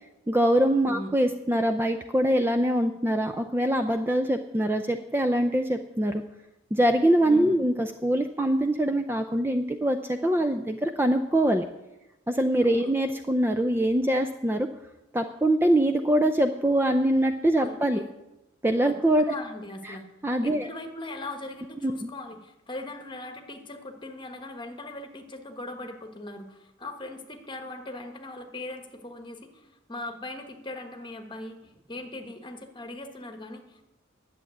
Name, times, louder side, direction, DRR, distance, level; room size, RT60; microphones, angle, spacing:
voice 1, 0.3-6.2 6.7-11.6 12.3-14.7 15.1-18.0 18.6-19.2 19.9-20.0 20.2-20.7 21.8-21.9, right 1 dB, 10° right, 7 dB, 0.4 m, -23 dB
voice 2, 7.2-7.6 12.6-12.9 17.6-18.1 18.8-20.0 20.4-33.8, left 2 dB, 25° left, 5 dB, 1.3 m, -40 dB
11.0 x 7.2 x 9.2 m, 0.97 s
head